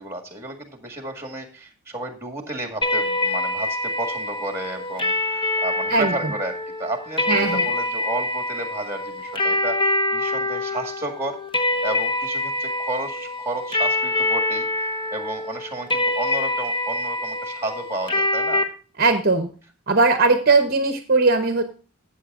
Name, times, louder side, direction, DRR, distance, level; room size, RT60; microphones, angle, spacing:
voice 1, 0.0-18.7, right 2 dB, 10° right, 4 dB, 1.8 m, -32 dB
sound 1, 2.8-18.6, left 2 dB, 20° left, 0.9 m, -25 dB
voice 2, 7.3-7.7 19.0-19.5 19.9-21.6, right 3 dB, 40° right, 7 dB, 0.8 m, -19 dB
14.5 x 7.8 x 2.4 m, 0.37 s
head